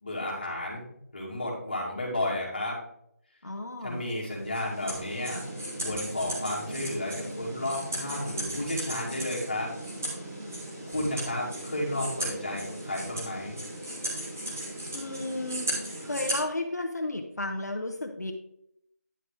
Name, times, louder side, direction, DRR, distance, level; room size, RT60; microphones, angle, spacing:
voice 1, 0.0-2.8 3.8-5.4 5.8-9.7 10.9-13.6, left 1 dB, 30° left, -5 dB, 2.5 m, -32 dB
voice 2, 3.4-4.0 14.9-15.7 16.0-18.3, left 2 dB, 80° left, 3 dB, 1.2 m, -33 dB
sound 1, 4.1-16.4, right 1 dB, 10° right, 0.9 m, -36 dB
10.0 x 4.2 x 4.9 m, 0.74 s
figure-of-eight pair, 180°, 9 cm